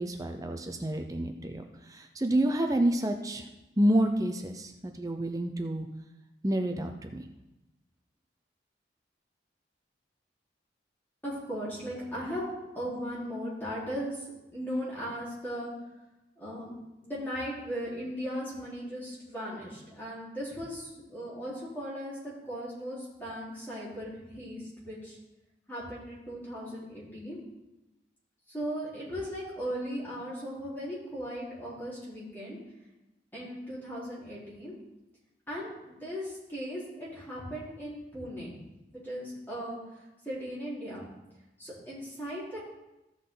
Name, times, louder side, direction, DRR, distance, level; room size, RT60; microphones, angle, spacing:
voice 1, 0.0-3.4 3.8-5.9 6.4-7.2, right 1 dB, 20° right, 5 dB, 0.6 m, -29 dB
voice 2, 11.2-12.5 12.7-14.2 14.5-15.7 16.4-16.7 17.0-22.2 22.4-25.2 25.7-27.4 28.5-32.6 33.3-34.7 35.5-38.5 39.0-39.8 40.2-41.0 41.6-42.6, equal, 10° left, -8 dB, 4.1 m, -37 dB
14.5 x 6.2 x 3.9 m, 0.96 s
head